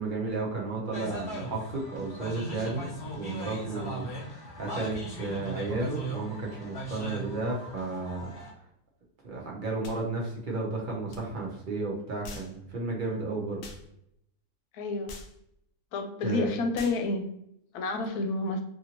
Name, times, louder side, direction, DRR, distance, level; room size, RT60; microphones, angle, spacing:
voice 1, 0.0-8.3 9.2-13.6 16.2-16.5, right 3 dB, 45° right, -2 dB, 0.7 m, -33 dB
sound 1, 0.9-8.5, right 1 dB, 40° left, 1.0 m, -39 dB
sound 2, 9.8-10.0 11.1-11.2 12.2-12.5 13.6-13.8 15.1-15.3 16.7-17.0, left 3 dB, 65° left, 0.9 m, -43 dB
voice 2, 14.7-15.1 15.9-17.3 17.7-18.6, left 2 dB, 90° left, 5 dB, 1.1 m, -29 dB
2.8 x 2.7 x 2.8 m, 0.75 s
omnidirectional pair, 1.6 m